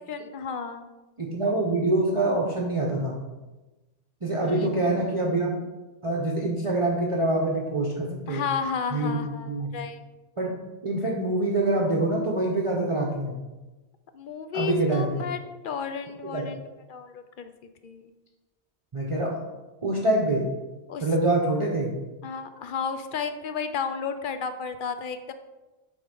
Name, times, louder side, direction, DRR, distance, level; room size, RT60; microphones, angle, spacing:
voice 1, 0.1-0.9 4.4-5.1 8.3-10.0 14.1-15.4 15.6-16.6 16.9-17.5 17.8-18.1 20.9-21.0 22.2-25.3, left 6 dB, 60° left, 9 dB, 0.6 m, -32 dB
voice 2, 1.2-3.2 4.2-5.6 6.0-8.4 8.9-9.7 10.4-10.5 10.8-13.4 14.5-15.2 16.2-16.5 18.9-19.4 19.8-20.5 21.0-21.9, right 2 dB, 30° right, -3 dB, 0.8 m, -25 dB
7.8 x 3.6 x 5.3 m, 1.1 s
omnidirectional pair, 1.1 m